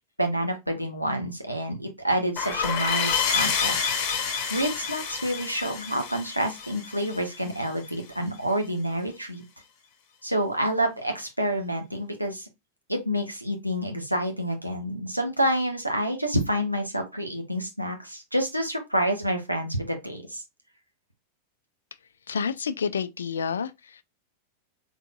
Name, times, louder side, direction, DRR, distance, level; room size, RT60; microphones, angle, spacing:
voice 1, 0.2-3.9 4.5-9.4 10.2-12.5 12.9-20.4, right 1 dB, 90° right, 0.9 m, -28 dB
sound 1, 2.4-7.7, left 6 dB, 45° left, 1.3 m, -28 dB
voice 2, 22.3-24.0, left 6 dB, 70° left, 0.3 m, -29 dB
3.8 x 3.5 x 2.3 m
figure-of-eight pair, 90°, 0 cm